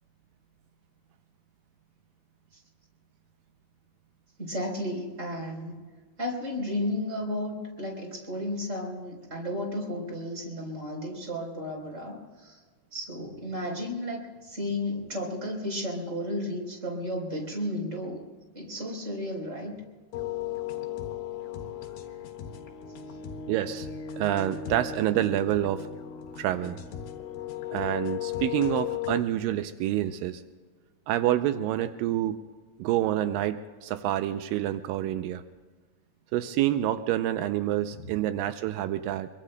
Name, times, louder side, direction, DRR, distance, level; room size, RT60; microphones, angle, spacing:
voice 1, 4.4-5.7 6.2-12.6 12.9-18.2 18.5-19.8 37.9-38.1, left 1 dB, 20° right, 0 dB, 3.9 m, -33 dB
sound 1, 20.1-29.2, left 10 dB, 75° left, 3.3 m, -36 dB
voice 2, 23.5-23.9 24.2-25.9 26.4-26.8 27.7-30.4 31.1-32.4 32.8-35.4 36.3-39.3, right 12 dB, 90° right, 10 dB, 2.0 m, -27 dB
25.5 x 23.5 x 2.2 m, 1.4 s
omnidirectional pair, 4.6 m